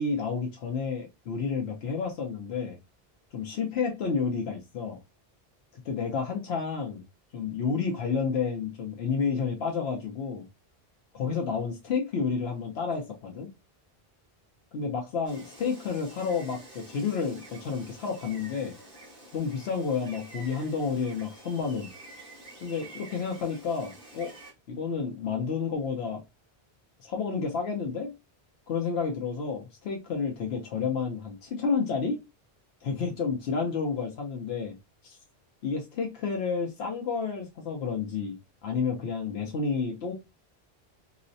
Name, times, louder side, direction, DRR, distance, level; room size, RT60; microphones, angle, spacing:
voice 1, 0.0-2.8 3.3-5.0 5.8-7.0 7.3-10.5 11.1-13.5 14.7-18.7 19.3-21.9 22.6-24.3 24.7-26.2 27.0-28.1 28.7-32.2 32.8-34.8 35.0-35.2 35.6-38.4 38.6-40.1, left 5 dB, 80° left, 0.9 m, -30 dB
Gull seagull, 15.3-24.5, right 2 dB, 35° right, 1.3 m, -49 dB
3.9 x 2.0 x 2.6 m
omnidirectional pair, 1.0 m